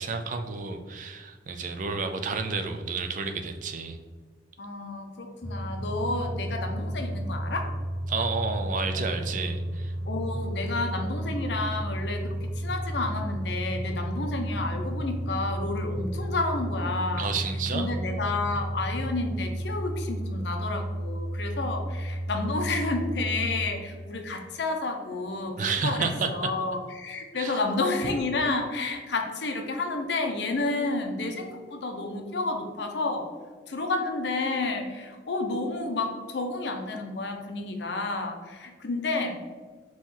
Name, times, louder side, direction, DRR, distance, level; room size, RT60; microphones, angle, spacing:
voice 1, 0.0-4.0 8.1-9.9 17.2-17.9 25.6-26.5 27.3-27.6, right 4 dB, 45° right, 6 dB, 0.4 m, -30 dB
voice 2, 4.6-7.7 10.1-17.3 17.7-25.5 25.8-33.3 33.7-39.6, left 3 dB, 70° left, 4 dB, 0.6 m, -30 dB
sound 1, 5.4-23.7, right 1 dB, 10° left, 0.6 m, -32 dB
4.3 x 3.0 x 3.6 m, 1.4 s
head